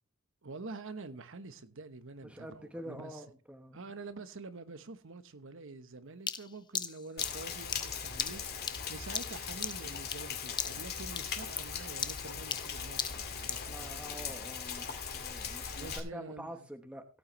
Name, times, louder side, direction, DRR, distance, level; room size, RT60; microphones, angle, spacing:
voice 1, 0.4-3.2 3.7-8.4 8.9-14.3 15.7-16.7, right 3 dB, 65° right, 1.1 m, -47 dB
voice 2, 2.2-3.8 13.7-17.0, right 1 dB, 5° right, 1.1 m, -46 dB
sound 1, 6.3-10.3 10.6-10.9 11.2-13.7, left 6 dB, 20° left, 0.7 m, -38 dB
Rain, 7.2-16.0, left 6 dB, 50° left, 2.2 m, -40 dB
17.0 x 8.8 x 3.2 m
head